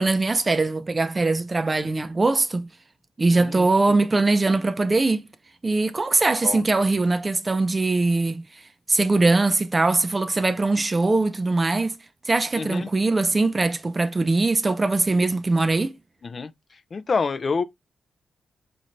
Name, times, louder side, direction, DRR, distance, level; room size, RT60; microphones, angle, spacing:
voice 1, 0.0-2.7 3.2-5.2 5.6-8.4 8.9-11.9 12.3-16.0, right 3 dB, 30° right, 0.5 m, -21 dB
voice 2, 3.3-3.7 6.4-6.6 12.6-12.9 16.2-16.5 16.9-17.6, left 4 dB, 50° left, 0.4 m, -27 dB
4.1 x 3.2 x 2.5 m
cardioid pair, 70°, 0 cm